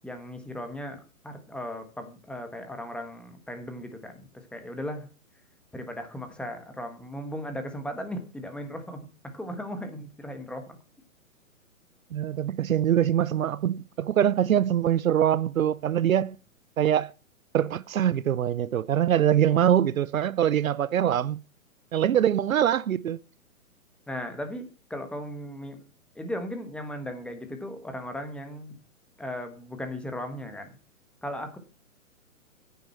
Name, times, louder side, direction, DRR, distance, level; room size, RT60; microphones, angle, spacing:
voice 1, 0.0-5.1 5.7-10.8 24.1-25.8 26.1-28.8 29.2-30.8 31.2-31.6, equal, 5° left, 1.4 m, -37 dB
voice 2, 12.1-16.4 16.8-17.1 17.5-21.4 21.9-23.2, right 10 dB, 70° right, 0.6 m, -23 dB
10.5 x 9.3 x 4.3 m
figure-of-eight pair, 125°, 42 cm